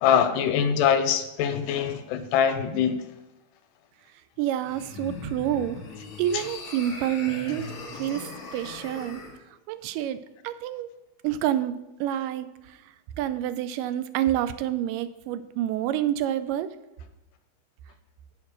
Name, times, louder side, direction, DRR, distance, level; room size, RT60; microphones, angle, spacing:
voice 1, 0.0-3.0 6.3-6.4, left 8 dB, 85° left, 9 dB, 2.1 m, -23 dB
voice 2, 4.4-5.8 6.2-9.2 9.7-10.2 10.4-10.9 11.2-12.5 13.2-16.7, right 11 dB, 90° right, 13 dB, 2.2 m, -28 dB
sound 1, 4.6-9.4, left 3 dB, 55° left, 1.0 m, -40 dB
7.3 x 5.1 x 6.5 m, 0.94 s
omnidirectional pair, 3.7 m